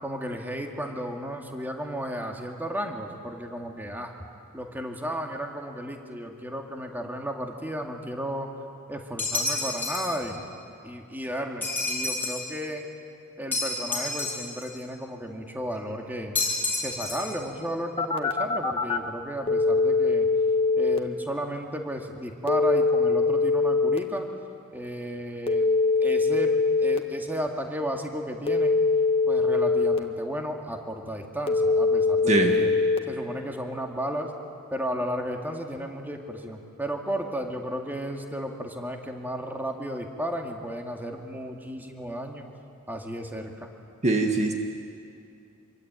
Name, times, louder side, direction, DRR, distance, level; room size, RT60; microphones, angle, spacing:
voice 1, 0.0-4.1 4.5-8.5 8.9-10.4 10.8-12.9 13.4-16.4 16.8-20.3 20.8-24.3 24.7-25.7 26.0-28.8 29.3-32.7 33.1-34.3 34.7-42.5 42.9-43.7, equal, 10° right, 2 dB, 2.2 m, -33 dB
sound 1, 9.2-10.2 11.6-12.5 13.5-14.7 16.3-17.4, left 3 dB, 10° left, 6.0 m, -29 dB
Telephone, 18.0-19.0 19.5-21.0 22.5-24.0 25.5-27.0 28.5-30.0 31.5-33.0, left 3 dB, 25° left, 1.7 m, -22 dB
voice 2, 44.0-44.5, right 2 dB, 35° right, 3 dB, 1.7 m, -22 dB
26.5 x 23.5 x 9.1 m, 2.5 s
head